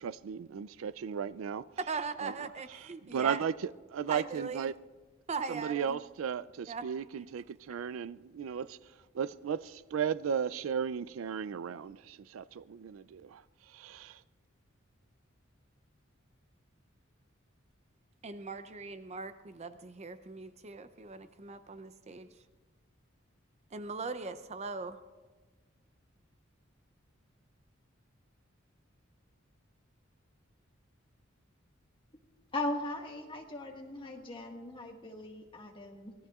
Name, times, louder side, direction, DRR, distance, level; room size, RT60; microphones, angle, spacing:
voice 1, 0.0-1.6 3.1-3.5 3.9-4.7 5.6-8.7 9.2-9.6 9.9-12.0 12.3-13.2 13.8-14.1, right 7 dB, 85° right, 0.4 m, -34 dB
voice 2, 1.8-3.4 4.1-4.7 5.3-6.0 6.7-6.9 7.1-7.3 18.2-22.3 23.7-25.0, right 4 dB, 35° right, 0.5 m, -39 dB
voice 3, 32.5-36.1, left 2 dB, 25° left, 1.6 m, -38 dB
24.0 x 18.5 x 2.4 m
head